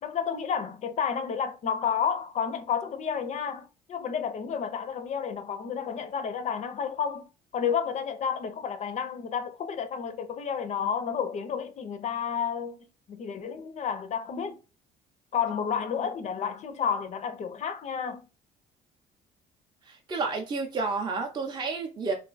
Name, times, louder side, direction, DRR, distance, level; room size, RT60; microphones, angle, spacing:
voice 1, 0.0-7.3 7.5-12.8 13.1-14.6 15.3-18.2, left 7 dB, 45° left, 0.4 m, -31 dB
voice 2, 19.9-22.1, right 4 dB, 25° right, 0.5 m, -30 dB
2.4 x 2.2 x 3.8 m
cardioid pair, 110°, 17 cm